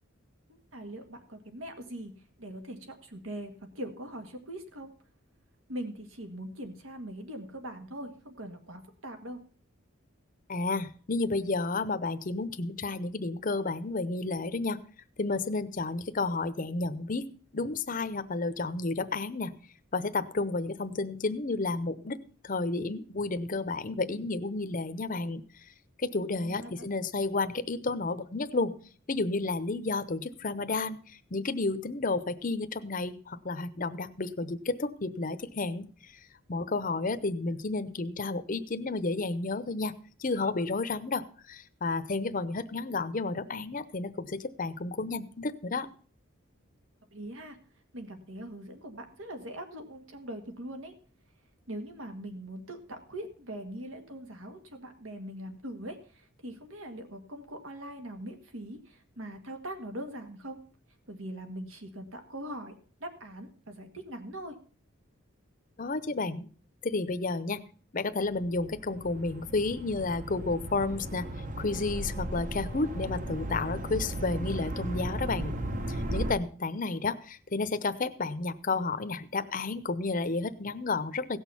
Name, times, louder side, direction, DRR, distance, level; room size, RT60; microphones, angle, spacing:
voice 1, 0.5-2.1 2.4-4.9 5.7-9.4 26.4-26.9 47.1-47.6 47.9-50.9 51.7-60.6 61.1-62.7 63.0-64.6, right 1 dB, 80° right, 6 dB, 1.9 m, -41 dB
voice 2, 10.5-14.8 15.2-17.3 17.5-19.5 19.9-22.2 22.4-25.6 26.0-28.8 29.1-36.2 36.5-39.9 40.2-45.9 65.8-66.5 66.8-67.6 67.9-71.3 71.6-75.5 75.9-81.4, left 3 dB, 40° left, 12 dB, 0.7 m, -31 dB
sound 1, 68.3-76.3, right 1 dB, 40° right, 1.0 m, -36 dB
17.0 x 6.3 x 5.6 m, 0.42 s
head